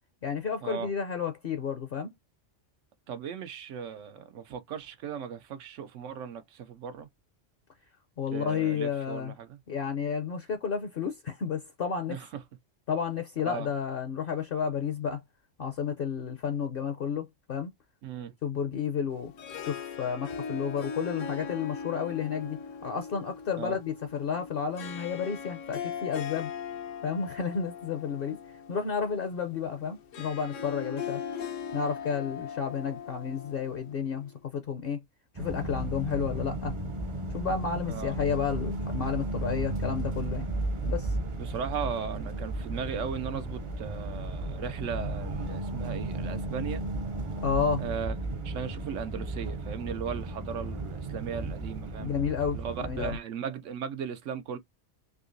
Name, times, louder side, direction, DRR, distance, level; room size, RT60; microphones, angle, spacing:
voice 1, 0.2-2.1 8.2-9.3 9.7-12.2 12.9-15.2 15.6-17.7 18.4-19.3 19.6-26.5 27.0-28.4 28.7-31.2 31.7-35.0 35.3-36.7 37.3-40.5 40.9-41.2 47.4-47.8 52.0-53.2, left 7 dB, 55° left, 0.7 m, -31 dB
voice 2, 3.1-7.1 8.3-9.6 12.1-12.4 13.4-13.7 18.0-18.3 23.6-23.8 37.9-38.2 41.4-46.8 47.8-48.1 48.4-52.1 52.5-54.6, right 7 dB, 90° right, 1.0 m, -37 dB
Harp, 19.1-34.4, left 6 dB, 85° left, 1.2 m, -40 dB
sound 1, 35.4-53.2, right 2 dB, 40° right, 0.4 m, -34 dB
3.7 x 2.8 x 2.5 m
omnidirectional pair, 1.3 m